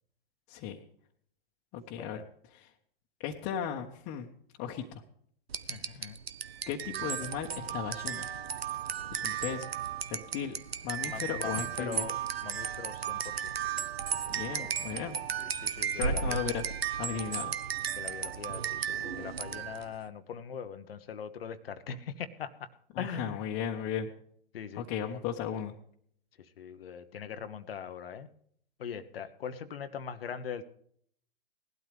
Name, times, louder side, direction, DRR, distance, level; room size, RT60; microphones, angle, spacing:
voice 1, 0.5-0.8 1.7-2.2 2.5-2.7 3.2-4.3 4.6-5.0 5.8-6.0 6.7-8.3 9.1-9.7 10.1-10.5 10.8-12.1 14.3-15.2 15.9-16.7 17.0-17.6 22.9-24.1 24.7-25.7, left 8 dB, 35° left, -1 dB, 1.3 m, -36 dB
sound 1, 5.5-19.9, right 8 dB, 85° right, 0.9 m, -35 dB
voice 2, 5.7-6.2 10.1-10.2 11.0-13.5 15.6-16.4 18.0-22.7 23.0-23.4 24.5-24.8 26.4-28.3 28.8-30.6, left 7 dB, 75° left, 9 dB, 1.0 m, -41 dB
18.5 x 12.0 x 3.4 m, 0.63 s
hypercardioid pair, 110°, 30 cm